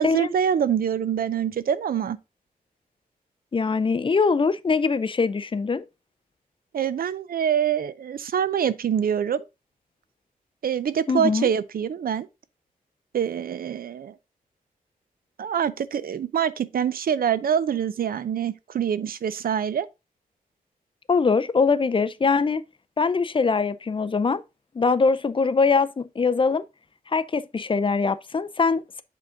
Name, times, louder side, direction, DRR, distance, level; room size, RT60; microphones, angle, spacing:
voice 1, 0.0-2.2 6.7-9.4 10.6-12.3 13.1-14.1 15.4-19.9, right 8 dB, 80° right, 0.5 m, -25 dB
voice 2, 3.5-5.8 11.1-11.5 21.1-22.6 23.0-24.4 24.8-26.6 27.1-29.0, left 4 dB, 35° left, 0.4 m, -22 dB
7.4 x 3.8 x 3.6 m
wide cardioid pair, 115°, 15 cm